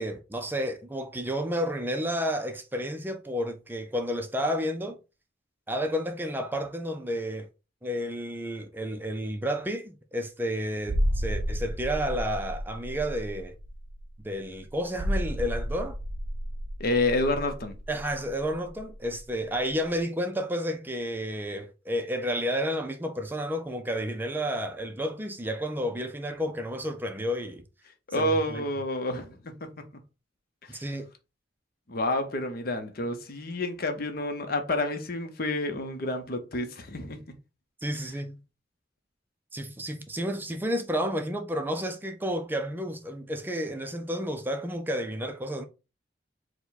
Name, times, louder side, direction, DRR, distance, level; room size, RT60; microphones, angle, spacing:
voice 1, 0.0-5.0 5.7-7.5 7.8-13.6 14.2-16.0 17.9-27.6 28.1-28.6 30.7-31.1 37.8-38.4 39.5-45.6, equal, 10° right, 0.4 m, -31 dB
sound 1, 10.9-19.3 19.5-19.7, equal, 80° right, 0.7 m, -32 dB
voice 2, 16.8-17.7 28.1-29.8 30.6-30.9 31.9-37.3, left 1 dB, 55° left, 0.8 m, -29 dB
4.7 x 2.2 x 4.0 m
head